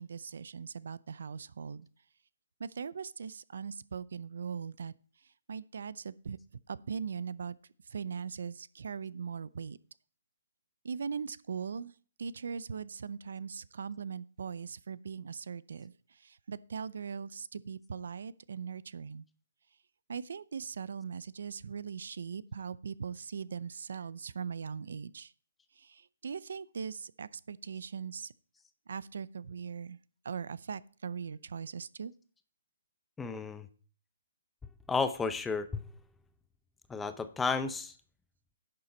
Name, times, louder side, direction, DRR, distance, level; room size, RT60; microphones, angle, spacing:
voice 1, 0.0-1.9 2.6-4.9 5.5-6.4 6.7-7.6 7.9-9.8 10.8-15.9 16.2-19.2 20.1-25.3 25.8-28.3 28.9-30.0 30.2-32.1, right 6 dB, 70° right, 19 dB, 0.5 m, -40 dB
voice 2, 33.2-33.7 34.9-35.9 36.9-37.9, left 4 dB, 5° left, 11 dB, 0.5 m, -32 dB
11.0 x 6.8 x 4.4 m, 0.41 s
hypercardioid pair, 160°, 0 cm